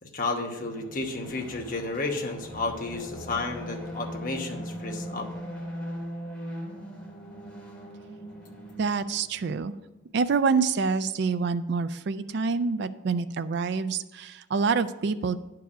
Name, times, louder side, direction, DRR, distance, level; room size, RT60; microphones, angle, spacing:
voice 1, 0.0-5.3, left 3 dB, 45° left, 3 dB, 1.0 m, -32 dB
sound 1, 0.6-9.8, equal, 5° left, 2.3 m, -40 dB
voice 2, 8.8-9.7 10.1-15.4, right 5 dB, 55° right, 12 dB, 0.4 m, -26 dB
10.0 x 4.7 x 6.0 m, 1.1 s
head